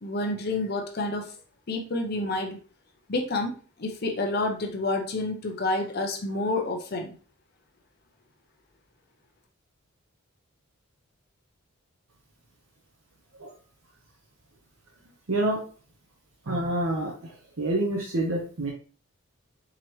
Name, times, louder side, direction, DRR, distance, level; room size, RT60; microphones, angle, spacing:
voice 1, 0.0-1.4 1.7-2.6 3.1-7.1, left 2 dB, 45° left, 3 dB, 0.6 m, -29 dB
voice 2, 15.3-15.6 16.5-17.1 17.6-18.7, right 1 dB, 70° right, -1 dB, 0.8 m, -27 dB
4.8 x 3.0 x 3.1 m, 0.38 s
head